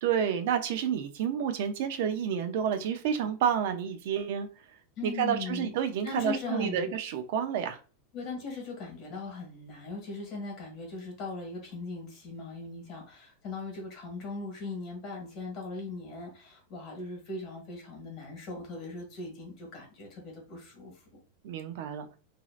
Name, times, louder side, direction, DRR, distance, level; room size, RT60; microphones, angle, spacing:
voice 1, 0.0-4.5 5.0-7.8 21.4-22.1, right 8 dB, 55° right, 8 dB, 0.4 m, -29 dB
voice 2, 5.0-5.7 6.0-6.9 8.1-20.9, left 3 dB, 35° left, 1 dB, 1.4 m, -39 dB
3.0 x 2.7 x 2.4 m, 0.35 s
supercardioid pair, 165°, 0 cm